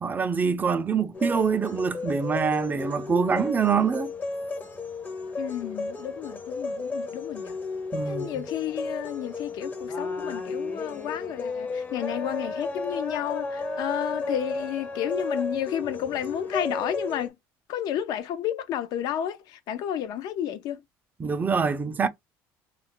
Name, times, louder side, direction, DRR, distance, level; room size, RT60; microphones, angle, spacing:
voice 1, 0.0-4.1 7.9-8.3 21.2-22.1, right 6 dB, 25° right, 0.4 m, -25 dB
sound 1, 1.1-17.3, left 3 dB, 25° left, 0.6 m, -33 dB
voice 2, 5.4-7.6 8.0-17.3 17.7-20.8, left 10 dB, 65° left, 0.5 m, -31 dB
2.3 x 2.1 x 3.7 m
cardioid pair, 115°, 7 cm